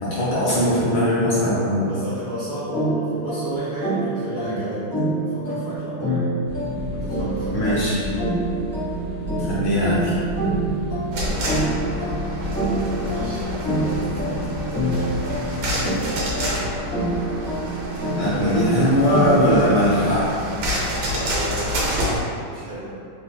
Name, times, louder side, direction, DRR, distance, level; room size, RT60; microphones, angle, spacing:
voice 1, 0.0-1.9 4.4-4.6 7.5-8.0 9.4-10.1 18.1-20.3, equal, 70° left, -8 dB, 1.0 m, -20 dB
voice 2, 1.9-4.9 5.1-6.3 6.9-8.2 11.1-11.5 12.6-14.5 21.1-22.1 22.5-22.9, right 1 dB, 85° right, -9 dB, 0.8 m, -33 dB
sound 1, 2.7-20.2, right 2 dB, 15° left, 0.5 m, -27 dB
sound 2, 6.4-17.7, left 2 dB, 45° right, 1.1 m, -32 dB
sound 3, 11.1-22.2, equal, 70° right, 1.3 m, -28 dB
3.4 x 2.5 x 2.2 m, 2.4 s
omnidirectional pair, 2.4 m